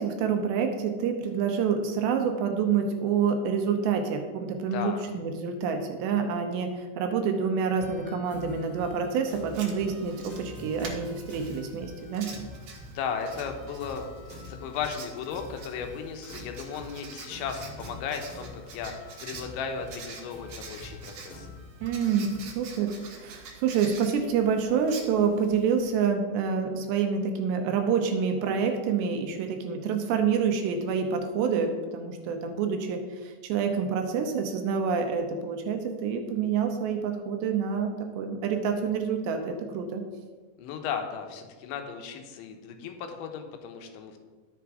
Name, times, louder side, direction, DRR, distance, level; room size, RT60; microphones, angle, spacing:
voice 1, 0.0-12.3 21.8-40.0, right 6 dB, 75° right, 4 dB, 2.8 m, -27 dB
voice 2, 4.7-5.0 12.9-21.5 40.6-44.2, left 6 dB, 80° left, 5 dB, 3.2 m, -36 dB
sound 1, 7.8-22.4, left 1 dB, 25° left, 2.1 m, -46 dB
Writing, 9.5-25.8, right 4 dB, 60° right, 2.3 m, -46 dB
11.5 x 7.0 x 4.8 m, 1.4 s
omnidirectional pair, 5.4 m